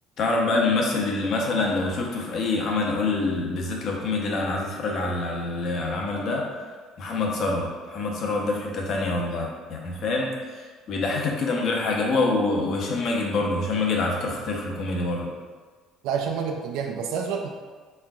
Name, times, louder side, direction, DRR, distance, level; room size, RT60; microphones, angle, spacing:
voice 1, 0.2-6.5 7.0-15.3, left 3 dB, 50° left, -1 dB, 0.7 m, -26 dB
voice 2, 16.0-17.5, right 6 dB, 85° right, 1 dB, 0.4 m, -28 dB
4.3 x 3.6 x 2.3 m, 1.4 s
cardioid pair, 145°, 0 cm